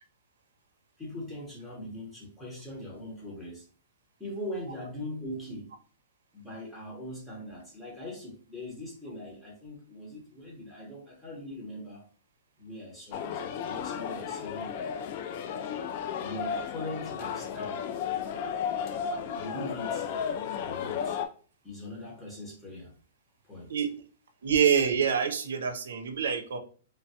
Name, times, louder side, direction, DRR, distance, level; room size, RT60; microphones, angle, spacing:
voice 1, 1.0-3.7 4.2-5.7 6.3-12.1 12.6-14.7 16.2-17.8 19.3-20.1 20.6-21.2 21.6-22.9 23.4-23.7, left 1 dB, 5° left, -3 dB, 0.9 m, -41 dB
sound 1, 13.1-21.3, left 7 dB, 40° left, 0.3 m, -34 dB
voice 2, 24.4-26.6, right 7 dB, 90° right, 7 dB, 0.5 m, -26 dB
3.1 x 2.2 x 2.7 m, 0.41 s
hypercardioid pair, 170°, 0 cm